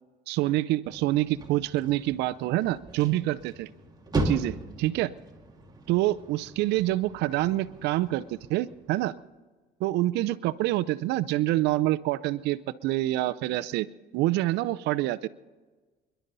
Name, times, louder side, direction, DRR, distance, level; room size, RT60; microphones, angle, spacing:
voice 1, 0.3-3.7 4.2-5.1 5.9-8.2 8.5-9.1 9.8-13.9 14.1-15.3, right 16 dB, 85° right, 15 dB, 0.6 m, -26 dB
sound 1, 0.8-9.1, right 2 dB, 25° right, 2.2 m, -37 dB
27.5 x 11.5 x 4.0 m, 1.3 s
cardioid pair, 110°, 17 cm